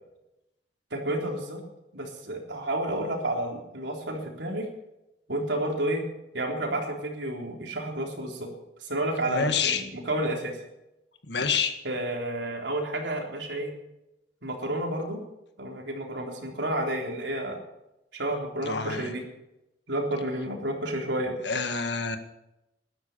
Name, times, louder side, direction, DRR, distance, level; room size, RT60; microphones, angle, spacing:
voice 1, 0.9-1.6 1.9-4.7 5.3-6.0 6.3-8.5 8.8-10.6 11.8-13.7 14.4-15.2 15.6-17.6 18.1-19.2 19.9-21.3, right 1 dB, 85° right, 1 dB, 3.8 m, -30 dB
voice 2, 9.3-9.8 11.3-11.7 18.6-19.1 21.4-22.2, left 5 dB, 70° left, 7 dB, 1.8 m, -27 dB
13.5 x 12.5 x 6.9 m, 0.91 s
head